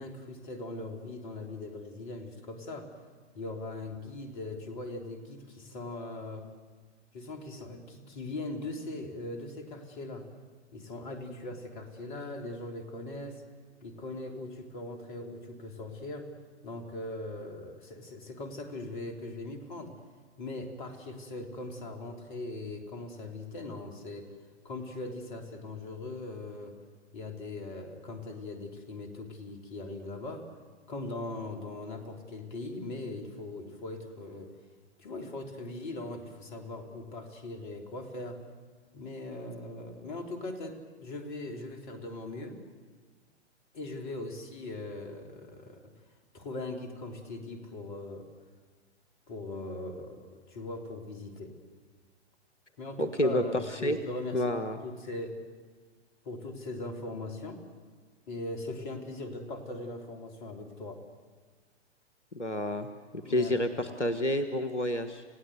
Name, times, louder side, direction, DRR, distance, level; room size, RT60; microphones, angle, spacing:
voice 1, 0.0-2.9 3.3-6.5 7.1-10.3 10.7-13.4 13.8-16.3 16.6-20.0 20.4-24.3 24.6-26.8 27.1-30.5 30.9-34.5 35.0-38.4 38.9-42.6 43.7-45.9 46.3-48.3 49.3-51.5 52.8-54.5 54.8-55.4 56.2-57.6 58.3-61.1 63.2-63.5, left 2 dB, 45° left, 4 dB, 3.5 m, -40 dB
voice 2, 53.0-54.0 54.3-54.8 62.3-62.9 63.1-65.2, left 1 dB, 85° left, 9 dB, 1.4 m, -29 dB
29.5 x 16.5 x 8.1 m, 1.5 s
figure-of-eight pair, 115°, 34 cm